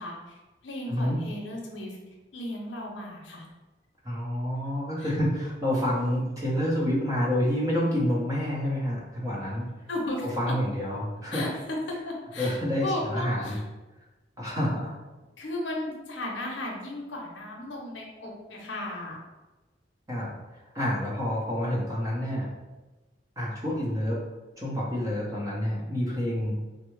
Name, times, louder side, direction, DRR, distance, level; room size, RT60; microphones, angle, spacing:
voice 1, 0.0-2.0 2.3-3.5 5.0-5.1 9.9-10.5 11.3-11.8 12.0-13.6 15.4-19.2, left 1 dB, 80° left, -1 dB, 0.7 m, -35 dB
voice 2, 0.9-1.2 4.0-9.7 10.4-11.4 12.4-13.6 14.4-14.9 20.1-20.3 20.7-22.5 23.4-24.2 24.6-26.5, equal, 20° right, -5 dB, 0.7 m, -28 dB
3.3 x 2.0 x 3.1 m, 1.1 s
head